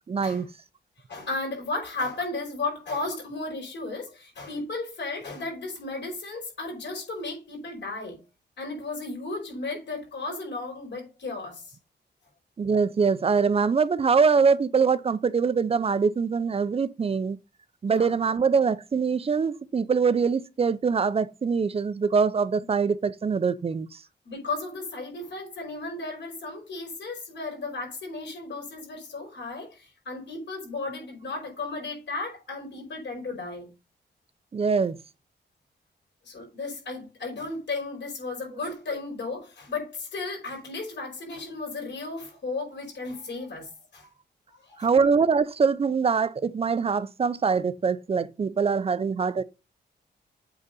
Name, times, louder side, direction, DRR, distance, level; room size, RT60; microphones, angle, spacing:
voice 1, 0.1-0.5 12.6-17.4 17.8-23.9 34.5-35.0 44.8-49.4, right 5 dB, 35° right, 0.5 m, -23 dB
voice 2, 1.1-8.2 8.6-11.8 17.9-18.1 22.6-22.7 24.2-33.7 36.2-44.1 44.6-44.9, left 3 dB, 80° left, 5.1 m, -34 dB
8.2 x 3.9 x 5.3 m
wide cardioid pair, 150°, 18 cm